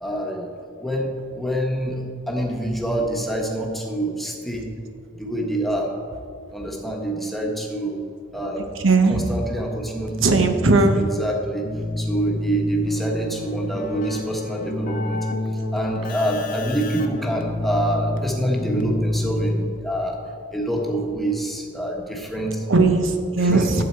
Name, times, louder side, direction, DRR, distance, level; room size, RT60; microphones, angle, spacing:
voice 1, 0.0-4.7 5.2-5.9 6.5-8.0 8.3-8.6 9.1-11.6 12.0-15.2 15.7-20.2 20.5-22.7 23.5-23.8, right 1 dB, ahead, -1 dB, 1.2 m, -26 dB
voice 2, 8.6-9.3 10.2-11.0 22.7-23.8, right 3 dB, 80° right, 6 dB, 1.0 m, -18 dB
Keyboard (musical), 11.6-20.0, left 1 dB, 45° left, 0.8 m, -28 dB
12.0 x 7.9 x 4.5 m, 2.4 s
head